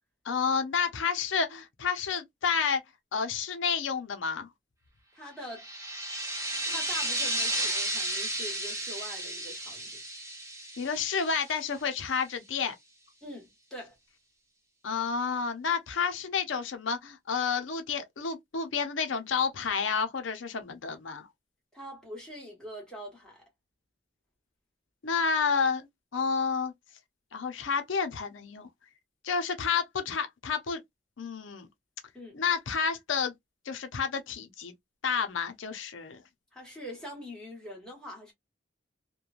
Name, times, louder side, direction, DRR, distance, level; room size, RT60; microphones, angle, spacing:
voice 1, 0.2-2.8 3.1-4.5 10.8-12.7 14.8-21.3 25.0-25.9 26.1-26.7 27.3-28.7 29.2-30.8 31.2-31.7 32.3-33.3 33.7-34.7 35.0-36.2, left 6 dB, 85° left, 0.6 m, -30 dB
voice 2, 5.1-5.7 6.7-10.0 13.2-14.0 21.7-23.4 32.1-32.4 36.5-38.3, equal, 5° left, 1.3 m, -43 dB
sound 1, 5.5-11.8, right 1 dB, 15° right, 0.7 m, -33 dB
3.0 x 2.2 x 2.4 m
head